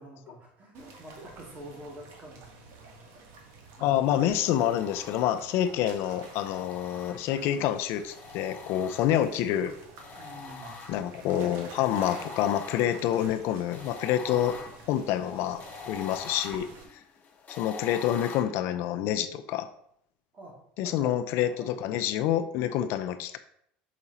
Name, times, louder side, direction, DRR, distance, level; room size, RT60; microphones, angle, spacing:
voice 1, 0.0-3.3 3.8-4.1 10.2-10.8 14.2-14.6 20.3-20.6 20.8-21.2 21.5-21.8, right 1 dB, 35° right, -1 dB, 2.5 m, -47 dB
sound 1, 0.7-16.8, right 3 dB, 60° right, 1.5 m, -49 dB
voice 2, 3.8-9.7 10.9-14.5 14.9-16.7 17.5-19.7 20.8-23.4, left 11 dB, 60° left, 10 dB, 0.6 m, -27 dB
sound 2, 4.4-5.6 6.2-7.6 8.1-9.4 10.0-11.3 11.8-18.4, left 5 dB, 30° left, 1.3 m, -44 dB
6.1 x 4.9 x 4.2 m, 0.71 s
supercardioid pair, 115°, 5 cm